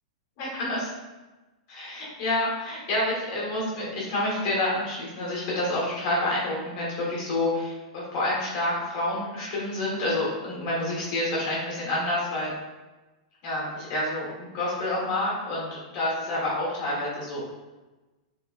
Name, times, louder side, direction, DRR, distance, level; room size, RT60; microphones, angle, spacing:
voice 1, 0.4-0.9 1.7-12.5 13.4-17.4, left 1 dB, 30° left, -5 dB, 1.0 m, -28 dB
3.4 x 3.1 x 2.3 m, 1.1 s
supercardioid pair, 180°, 4 cm